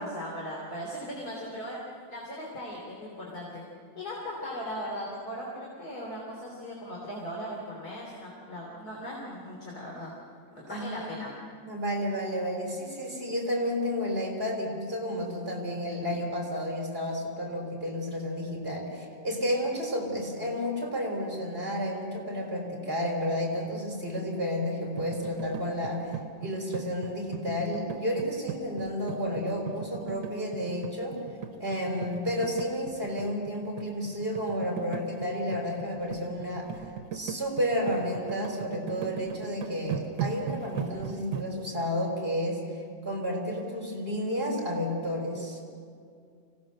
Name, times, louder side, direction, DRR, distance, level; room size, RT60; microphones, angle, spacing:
voice 1, 0.0-1.8 2.1-3.6 4.0-10.1 10.5-11.3, equal, 55° left, -4 dB, 3.8 m, -38 dB
voice 2, 10.7-11.1 11.5-31.2 31.6-45.6, equal, 30° right, 0 dB, 4.0 m, -31 dB
sound 1, 25.0-41.4, right 7 dB, 70° right, 1.6 m, -38 dB
25.0 x 17.5 x 6.5 m, 2.3 s
omnidirectional pair, 2.0 m